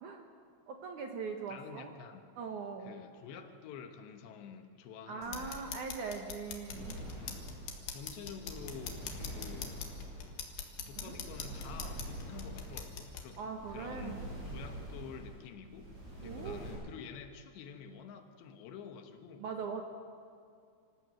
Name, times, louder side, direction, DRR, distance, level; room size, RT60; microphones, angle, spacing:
voice 1, 0.7-1.9 2.4-2.9 5.1-7.0 11.0-11.2 13.4-14.2 16.2-16.8 19.4-19.8, right 5 dB, 60° right, 3 dB, 2.2 m, -41 dB
voice 2, 1.5-2.2 2.8-5.8 7.2-7.4 7.9-9.8 10.9-14.2 14.5-15.9 16.2-19.4, left 7 dB, 85° left, 7 dB, 3.5 m, -49 dB
sound 1, 5.2-13.2, left 7 dB, 65° left, 3.2 m, -45 dB
sound 2, 6.7-16.7, right 1 dB, 40° right, 9.2 m, -45 dB
25.5 x 15.0 x 7.7 m, 2.3 s
omnidirectional pair, 4.9 m